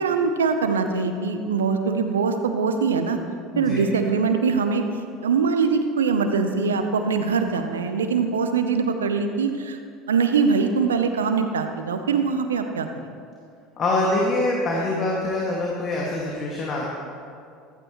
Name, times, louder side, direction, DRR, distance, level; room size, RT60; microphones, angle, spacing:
voice 1, 0.0-3.2 3.6-4.8 5.2-9.8 10.1-12.9, right 5 dB, 85° right, 7 dB, 0.8 m, -22 dB
voice 2, 3.5-3.9 13.8-16.9, left 2 dB, 40° left, -3 dB, 2.1 m, -24 dB
15.0 x 13.0 x 3.2 m, 2.3 s
hypercardioid pair, 70°, 0 cm